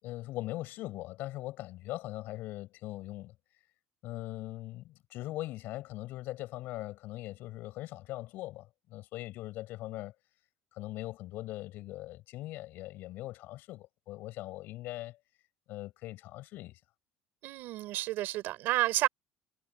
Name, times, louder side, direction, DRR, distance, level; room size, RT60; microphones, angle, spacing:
voice 1, 0.0-3.3 4.0-10.1 10.7-15.2 15.7-16.8, left 17 dB, 60° left, 6.6 m, -41 dB
voice 2, 17.4-19.1, right 16 dB, 60° right, 5.8 m, -30 dB
cardioid pair, 145°, 4 cm